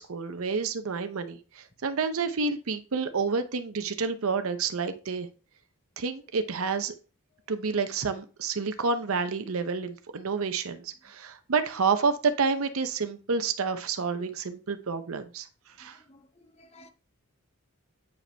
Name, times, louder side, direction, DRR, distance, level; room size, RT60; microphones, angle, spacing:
voice 1, 0.0-5.3 6.0-6.9 7.5-15.5 15.8-16.0, right 5 dB, 75° right, 0.7 m, -29 dB
voice 2, 15.8-16.9, left 1 dB, 30° left, 0.6 m, -55 dB
8.4 x 5.1 x 3.3 m
head